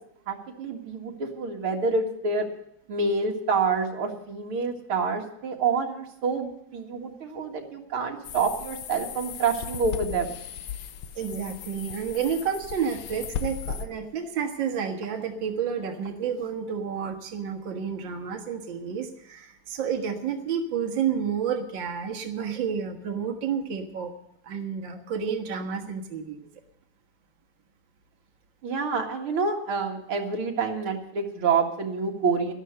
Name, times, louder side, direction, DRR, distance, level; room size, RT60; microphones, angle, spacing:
voice 1, 0.3-2.5 2.9-10.4 28.6-32.5, right 4 dB, 85° right, 2 dB, 2.7 m, -27 dB
sound 1, 8.2-13.9, left 8 dB, 65° left, 1.4 m, -36 dB
voice 2, 11.2-24.1 24.4-26.5, right 7 dB, 65° right, 3 dB, 2.2 m, -30 dB
12.0 x 12.0 x 6.7 m, 0.76 s
omnidirectional pair, 2.3 m